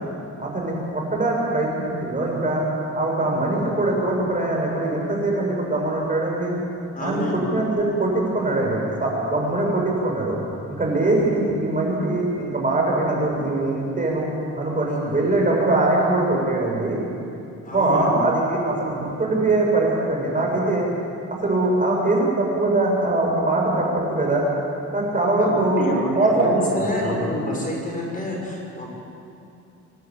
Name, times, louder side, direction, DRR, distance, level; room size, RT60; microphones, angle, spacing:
voice 1, 0.4-2.6 2.9-6.5 7.0-10.4 10.7-14.3 14.6-17.0 17.7-20.9 21.3-24.4 24.9-27.3, right 2 dB, 25° right, -2 dB, 7.1 m, -22 dB
voice 2, 6.9-7.5 17.6-18.2 25.4-28.9, left 1 dB, 25° left, -2 dB, 5.6 m, -28 dB
26.5 x 11.5 x 8.9 m, 2.6 s
cardioid pair, 90°, 30 cm